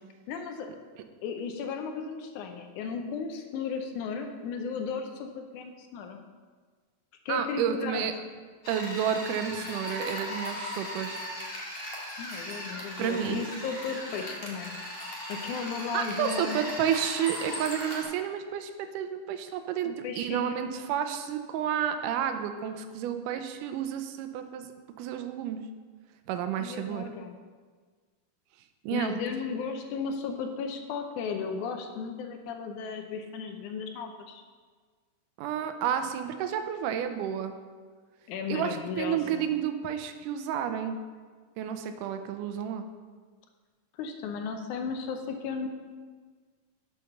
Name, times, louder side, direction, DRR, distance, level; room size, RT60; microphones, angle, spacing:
voice 1, 0.3-0.7 1.2-6.2 7.3-8.1 12.2-14.7 15.3-16.6 19.9-20.6 26.6-27.3 28.9-34.4 38.3-39.5 44.0-45.7, left 5 dB, 75° left, 5 dB, 2.0 m, -35 dB
voice 2, 7.3-8.1 8.7-11.2 13.0-13.4 15.9-24.7 25.0-25.6 26.3-27.1 28.8-29.2 35.4-37.6 38.5-41.0 41.6-42.9, right 9 dB, 80° right, 8 dB, 2.1 m, -31 dB
sound 1, 8.6-18.0, left 1 dB, 50° left, 0.6 m, -38 dB
6.5 x 6.5 x 5.8 m, 1.5 s
omnidirectional pair, 3.8 m